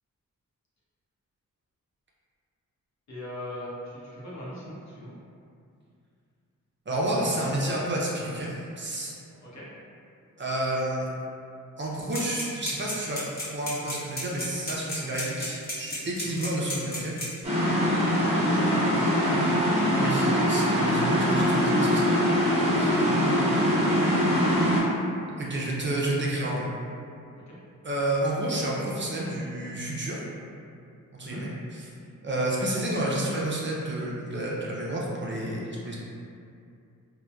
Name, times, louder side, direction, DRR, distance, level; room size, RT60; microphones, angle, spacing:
voice 1, 3.1-5.1 9.3-9.7 16.2-16.5 18.3-19.6 22.7-24.0 27.5-27.6 31.2-31.4, equal, 55° left, -7 dB, 0.7 m, -39 dB
voice 2, 6.9-9.1 10.4-11.1 11.8-13.2 13.5-17.1 20.0-22.1 22.7-23.0 25.4-26.7 27.8-30.2 31.2-31.9 32.2-36.0, right 1 dB, 35° right, -5 dB, 0.5 m, -30 dB
sound 1, 12.1-17.4, left 1 dB, 30° left, 0.9 m, -34 dB
sound 2, 17.4-24.8, equal, 20° right, 0.9 m, -23 dB
2.7 x 2.1 x 2.2 m, 2.5 s
cardioid pair, 70°, 33 cm